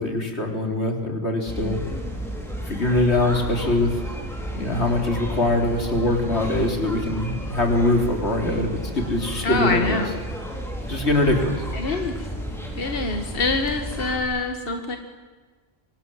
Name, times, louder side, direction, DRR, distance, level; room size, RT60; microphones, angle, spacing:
voice 1, 0.0-1.8 2.7-4.2 4.6-10.0 10.9-11.6, left 2 dB, 85° left, 3 dB, 4.1 m, -23 dB
sound 1, 1.5-14.2, equal, ahead, 5.8 m, -32 dB
voice 2, 9.4-10.1 11.7-12.3 12.8-15.0, left 3 dB, 60° left, 5 dB, 2.1 m, -25 dB
27.0 x 25.5 x 7.9 m, 1.4 s
omnidirectional pair, 1.1 m